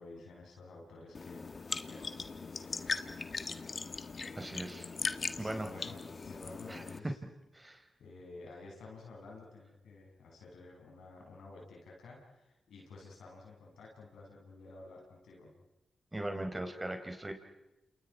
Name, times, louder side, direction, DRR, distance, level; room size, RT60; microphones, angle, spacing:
voice 1, 0.0-1.5 1.8-3.0 5.3-6.0 6.3-7.2 8.0-15.5, left 3 dB, 85° left, -2 dB, 7.2 m, -52 dB
sound 1, 1.1-7.0, left 4 dB, 55° left, 1.5 m, -39 dB
voice 2, 4.4-4.9 5.4-5.7 6.7-6.8 7.5-7.8 16.1-17.3, right 1 dB, 25° right, 5 dB, 4.6 m, -39 dB
29.0 x 28.5 x 4.9 m, 0.94 s
supercardioid pair, 40°, 0 cm